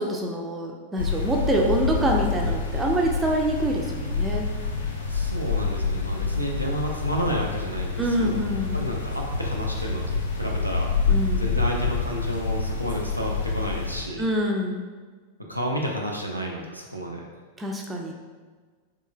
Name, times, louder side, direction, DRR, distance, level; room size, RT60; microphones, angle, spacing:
voice 1, 0.0-4.5 8.0-8.8 11.1-11.4 14.2-14.9 17.6-18.1, right 1 dB, 15° right, 0 dB, 0.4 m, -26 dB
sound 1, 1.0-14.0, left 4 dB, 70° left, 0.4 m, -27 dB
voice 2, 5.1-8.4 8.7-10.9 11.3-14.2 15.5-17.2, equal, 90° right, -1 dB, 0.4 m, -31 dB
3.8 x 2.4 x 2.2 m, 1.5 s
figure-of-eight pair, 90°, 0 cm